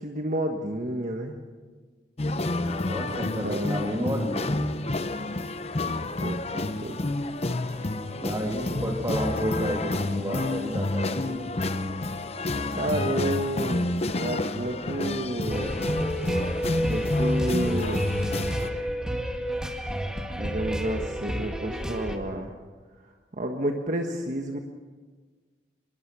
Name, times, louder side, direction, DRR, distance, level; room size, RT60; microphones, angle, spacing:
voice 1, 0.0-1.4 3.2-3.8 6.0-7.0 8.7-9.9 12.7-15.8 16.8-18.2 20.3-22.5 23.4-24.6, right 1 dB, 45° right, 3 dB, 1.4 m, -31 dB
sound 1, 2.2-18.7, left 2 dB, 35° left, 0.8 m, -29 dB
voice 2, 2.6-4.6 8.2-11.5, equal, 20° right, 2 dB, 2.9 m, -31 dB
sound 2, 15.5-22.2, equal, 5° right, 1.9 m, -30 dB
25.5 x 21.5 x 6.2 m, 1.4 s
head